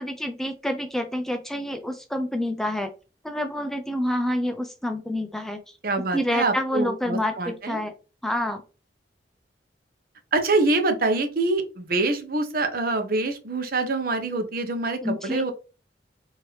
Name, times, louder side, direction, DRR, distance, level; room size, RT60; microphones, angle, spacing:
voice 1, 0.0-2.9 3.2-5.6 6.1-7.9 8.2-8.6 15.0-15.4, left 1 dB, ahead, 6 dB, 0.4 m, -28 dB
voice 2, 5.8-7.8 10.3-15.5, right 2 dB, 55° right, 6 dB, 0.8 m, -25 dB
4.7 x 2.8 x 3.1 m, 0.32 s
head